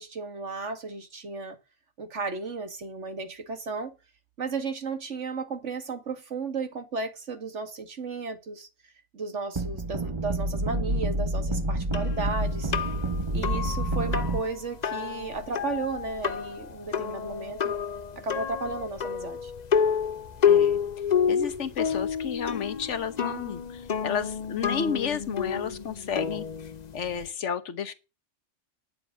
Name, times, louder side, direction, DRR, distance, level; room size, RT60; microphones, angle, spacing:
voice 1, 0.0-1.6 2.0-4.0 4.4-8.7 9.1-12.7 13.3-17.7 18.2-19.5, right 4 dB, 80° right, 2.2 m, -34 dB
sound 1, 9.6-14.4, right 1 dB, 25° right, 1.2 m, -28 dB
sound 2, 11.9-27.3, left 7 dB, 45° left, 0.7 m, -29 dB
voice 2, 20.4-20.8 21.3-26.5 26.9-27.9, left 7 dB, 80° left, 1.4 m, -32 dB
9.6 x 7.1 x 9.2 m
omnidirectional pair, 1.2 m